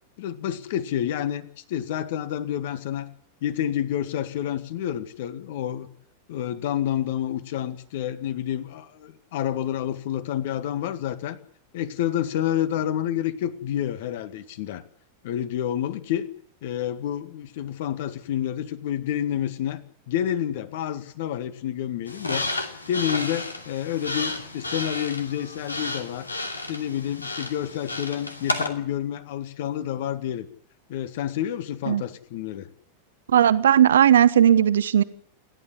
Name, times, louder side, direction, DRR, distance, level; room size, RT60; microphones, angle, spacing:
voice 1, 0.2-3.1 3.4-5.9 6.3-11.4 11.7-14.8 15.2-16.3 16.6-22.5 22.9-26.3 26.7-30.5 30.9-32.7, left 10 dB, 55° left, 12 dB, 1.9 m, -29 dB
sound 1, 22.1-28.7, left 2 dB, 80° left, 2.8 m, -32 dB
voice 2, 33.3-35.0, right 10 dB, 65° right, 14 dB, 1.2 m, -17 dB
29.5 x 12.5 x 9.8 m, 0.67 s
figure-of-eight pair, 90°, 0 cm